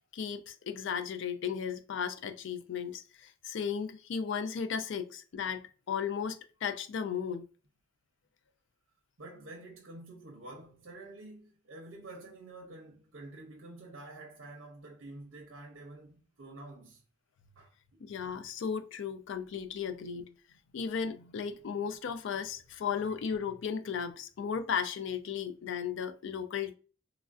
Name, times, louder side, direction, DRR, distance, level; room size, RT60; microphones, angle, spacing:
voice 1, 0.1-7.5 18.0-20.3 20.7-26.8, left 7 dB, 65° left, 0.3 m, -35 dB
voice 2, 9.2-17.0 17.6-17.7, right 2 dB, 75° right, 0.6 m, -48 dB
3.1 x 2.4 x 2.3 m
head